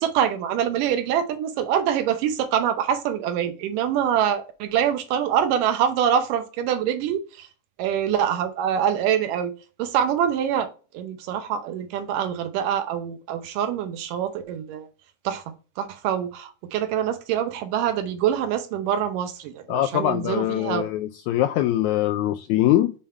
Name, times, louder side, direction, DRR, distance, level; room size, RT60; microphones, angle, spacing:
voice 1, 0.0-7.5 7.8-9.5 9.8-10.7 10.9-14.9 15.3-15.4 15.8-20.9, right 9 dB, 80° right, 2.4 m, -25 dB
voice 2, 19.7-22.9, left 13 dB, 85° left, 1.7 m, -22 dB
7.1 x 3.6 x 4.2 m
omnidirectional pair, 3.8 m